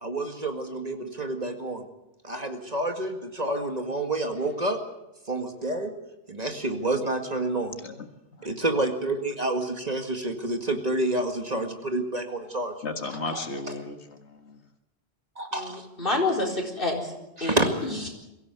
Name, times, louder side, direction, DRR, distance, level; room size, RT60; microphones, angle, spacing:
voice 1, 0.0-1.8 2.2-4.8 5.3-5.9 6.3-7.8 8.4-12.7 13.3-13.4 15.4-15.9 17.4-17.7, right 2 dB, 40° right, 5 dB, 2.1 m, -28 dB
voice 2, 12.8-14.6, left 3 dB, 85° left, 6 dB, 2.0 m, -35 dB
voice 3, 15.5-17.1 17.4-18.1, left 2 dB, 55° left, 0 dB, 4.4 m, -28 dB
23.0 x 15.5 x 8.1 m, 0.94 s
omnidirectional pair, 1.1 m